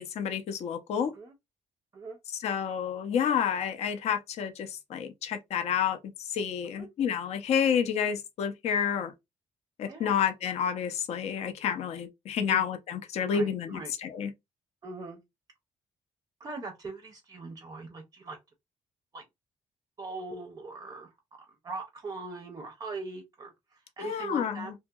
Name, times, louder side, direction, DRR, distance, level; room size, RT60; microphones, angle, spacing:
voice 1, 0.0-1.1 2.4-6.0 6.3-9.1 9.8-14.3 24.0-24.7, left 8 dB, 60° left, 0.5 m, -29 dB
voice 2, 13.2-13.9 14.8-15.2 16.4-18.4 19.1-19.2 20.0-21.1 21.6-23.5 24.0-24.7, right 3 dB, 30° right, 0.5 m, -41 dB
2.7 x 2.7 x 2.2 m
cardioid pair, 155°, 12 cm